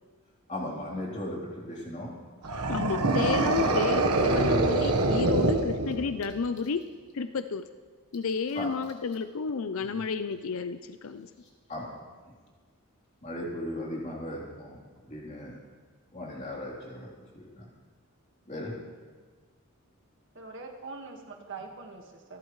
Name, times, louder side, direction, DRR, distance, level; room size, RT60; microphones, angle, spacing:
voice 1, 0.5-2.2 3.0-3.4 8.6-8.7 9.8-9.9 11.7-11.9 13.2-15.6 16.1-17.1 17.3-17.7 18.5-18.7, left 1 dB, 30° left, -4 dB, 3.5 m, -37 dB
sound 1, 2.4-6.3, right 2 dB, 90° right, 1.3 m, -25 dB
voice 2, 2.7-6.8 7.1-7.7 8.1-11.3, left 5 dB, 65° left, 10 dB, 0.5 m, -31 dB
voice 3, 20.4-22.4, right 4 dB, 55° right, 2 dB, 1.7 m, -43 dB
27.5 x 11.5 x 3.2 m, 1.5 s
head